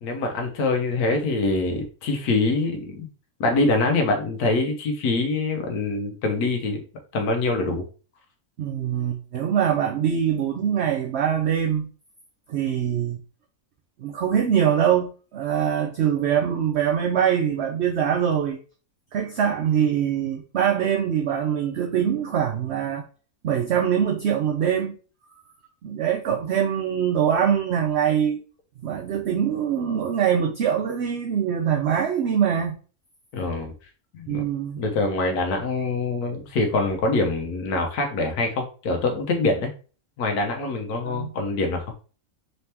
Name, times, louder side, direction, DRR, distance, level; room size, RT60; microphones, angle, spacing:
voice 1, 0.0-3.1 3.4-6.8 7.1-7.8 33.3-33.7 34.1-34.5 34.8-39.7 40.2-41.8, left 3 dB, 90° left, 1.3 m, -24 dB
voice 2, 8.6-11.9 12.5-13.2 14.0-18.6 19.1-23.0 23.4-24.9 25.8-28.4 28.8-32.7 34.3-34.8 41.0-41.3, right 8 dB, 60° right, 0.7 m, -23 dB
4.2 x 2.9 x 3.3 m
omnidirectional pair, 1.5 m